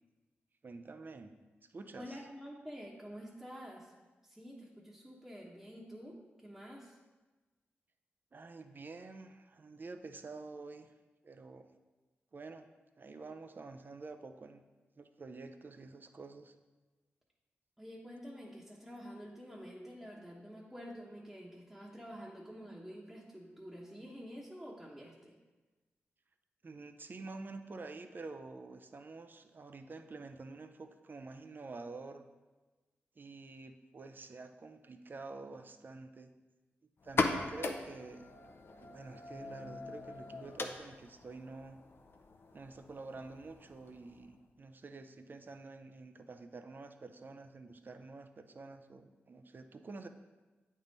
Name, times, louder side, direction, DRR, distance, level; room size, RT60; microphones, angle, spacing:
voice 1, 0.6-1.4 1.7-2.2 8.3-10.9 11.2-11.7 12.3-12.7 13.0-14.6 15.0-16.5 26.6-32.2 33.2-36.3 37.0-38.3 38.8-41.8 42.5-50.1, right 3 dB, 45° right, 8 dB, 0.5 m, -48 dB
voice 2, 2.0-3.9 4.2-7.0 17.8-25.3, equal, 5° right, -4 dB, 1.0 m, -48 dB
sound 1, 37.0-44.4, left 3 dB, 60° left, 0.6 m, -40 dB
8.5 x 3.6 x 4.0 m, 1.2 s
cardioid pair, 60°, 4 cm